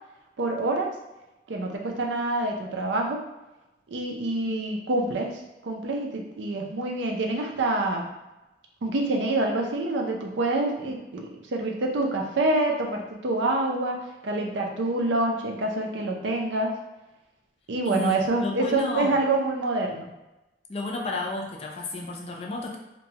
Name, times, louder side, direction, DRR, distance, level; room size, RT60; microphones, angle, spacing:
voice 1, 0.4-0.9 1.5-3.2 3.9-5.3 5.6-8.1 8.8-16.7 17.7-20.1, right 2 dB, 85° right, 1 dB, 0.5 m, -26 dB
voice 2, 17.8-19.2 20.7-22.8, left 2 dB, 35° left, 0 dB, 0.4 m, -32 dB
2.9 x 2.2 x 2.7 m, 1.0 s
head